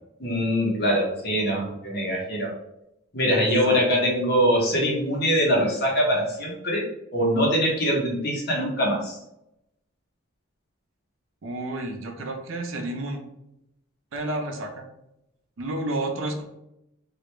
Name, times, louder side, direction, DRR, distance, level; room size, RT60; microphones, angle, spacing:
voice 1, 0.2-2.5 3.1-9.2, equal, 50° left, -2 dB, 0.8 m, -23 dB
voice 2, 11.4-13.2 14.1-14.8 15.6-16.4, right 2 dB, 70° right, 4 dB, 0.5 m, -30 dB
2.4 x 2.1 x 3.0 m, 0.83 s
head